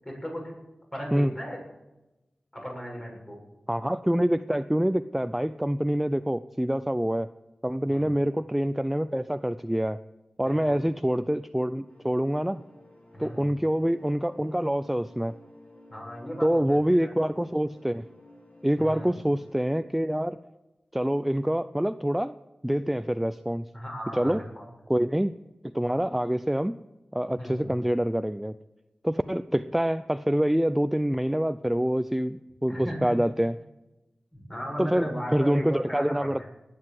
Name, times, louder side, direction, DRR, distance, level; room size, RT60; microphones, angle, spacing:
voice 1, 0.0-0.6 0.9-1.6 2.5-3.4 7.9-8.1 10.4-10.8 13.1-13.5 15.9-17.1 18.8-19.1 23.7-24.7 27.3-27.7 32.7-33.0 34.3-36.4, equal, 25° left, -1 dB, 7.6 m, -37 dB
voice 2, 3.7-7.3 7.6-10.0 10.4-12.6 13.2-15.3 16.4-18.1 18.6-20.4 20.9-22.3 22.6-23.7 24.1-24.4 24.9-25.3 25.6-26.8 27.1-28.5 29.0-33.5 34.8-36.4, equal, 5° right, 11 dB, 0.5 m, -26 dB
sound 1, 11.9-19.5, equal, 50° left, 4.4 m, -54 dB
19.0 x 9.8 x 7.6 m, 1.0 s
wide cardioid pair, 65°, 3 cm